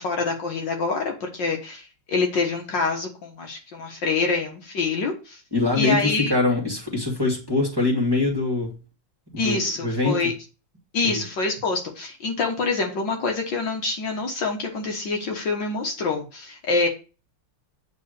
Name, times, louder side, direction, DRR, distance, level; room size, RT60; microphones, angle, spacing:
voice 1, 0.0-5.4 5.7-6.3 9.4-10.3 10.9-16.9, left 3 dB, 60° left, 2 dB, 1.9 m, -26 dB
voice 2, 5.5-8.8 9.3-10.2 11.1-11.2, left 3 dB, 10° right, -1 dB, 2.0 m, -23 dB
8.8 x 4.1 x 6.5 m, 0.33 s
omnidirectional pair, 2.4 m